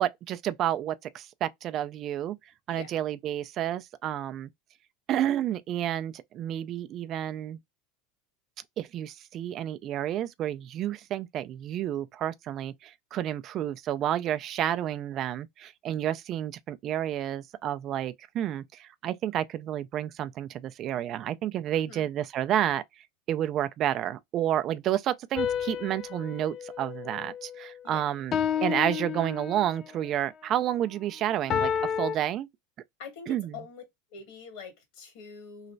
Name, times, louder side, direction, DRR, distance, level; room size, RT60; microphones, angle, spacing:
voice 1, 0.0-2.4 2.7-4.5 5.1-7.6 8.8-22.8 23.3-28.3 28.6-32.5 33.3-33.6, right 11 dB, 45° right, 0.4 m, -30 dB
voice 2, 2.7-3.0 21.7-22.1 27.8-28.0 33.0-33.8 34.1-35.7, left 6 dB, 70° left, 1.9 m, -44 dB
sound 1, 25.4-27.8 28.3-29.9 31.5-32.2, left 8 dB, 40° left, 0.4 m, -31 dB
3.2 x 2.9 x 2.6 m
hypercardioid pair, 95°, 0 cm